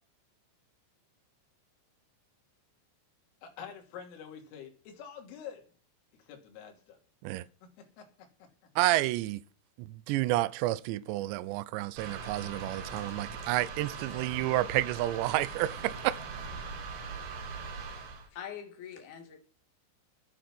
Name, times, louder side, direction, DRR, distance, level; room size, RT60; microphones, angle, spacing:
voice 1, 3.4-5.7 6.2-7.0 7.6-8.5, left 8 dB, 75° left, 5.1 m, -47 dB
voice 2, 8.8-9.4 9.8-16.1, right 17 dB, 85° right, 2.5 m, -30 dB
sound 1, 12.0-18.3, right 4 dB, 60° right, 3.9 m, -41 dB
voice 3, 18.3-19.4, left 8 dB, 55° left, 3.4 m, -43 dB
11.5 x 8.8 x 6.0 m
omnidirectional pair, 5.9 m